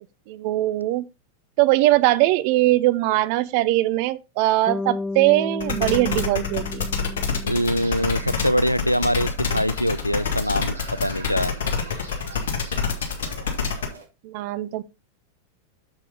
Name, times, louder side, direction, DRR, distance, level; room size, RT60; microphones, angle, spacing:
voice 1, 0.3-1.0 1.6-6.9 14.2-14.8, right 17 dB, 45° right, 0.6 m, -21 dB
Bass guitar, 4.7-8.8, left 2 dB, 5° left, 0.3 m, -33 dB
sound 1, 5.6-13.9, left 6 dB, 60° left, 1.8 m, -26 dB
voice 2, 7.4-11.5, equal, 90° left, 0.3 m, -23 dB
sound 2, 7.5-14.1, right 3 dB, 75° right, 1.9 m, -43 dB
7.0 x 6.8 x 3.7 m
figure-of-eight pair, 90°, 0 cm